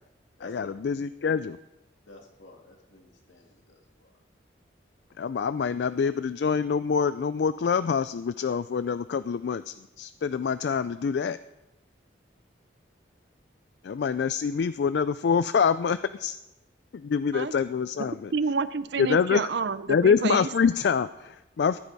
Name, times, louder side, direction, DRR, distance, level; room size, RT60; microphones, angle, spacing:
voice 1, 0.4-1.6 5.2-11.4 13.8-16.4 16.9-18.3 19.0-19.5 19.9-21.8, left 6 dB, 65° left, 14 dB, 0.3 m, -26 dB
voice 2, 2.1-4.1, left 2 dB, 85° left, 1 dB, 2.3 m, -50 dB
voice 3, 18.3-20.5, right 4 dB, 65° right, 15 dB, 0.5 m, -29 dB
14.5 x 11.5 x 4.1 m, 0.97 s
head